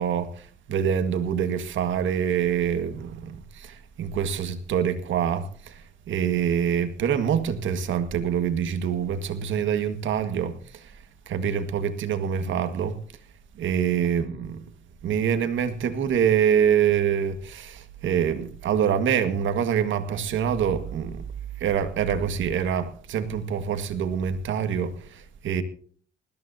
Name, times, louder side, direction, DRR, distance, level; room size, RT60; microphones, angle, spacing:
voice 1, 0.0-10.9 11.3-13.0 13.6-14.6 15.0-21.2 21.6-25.6, right 8 dB, 75° right, 1.8 m, -25 dB
20.0 x 14.5 x 2.8 m
cardioid pair, 90°, 20 cm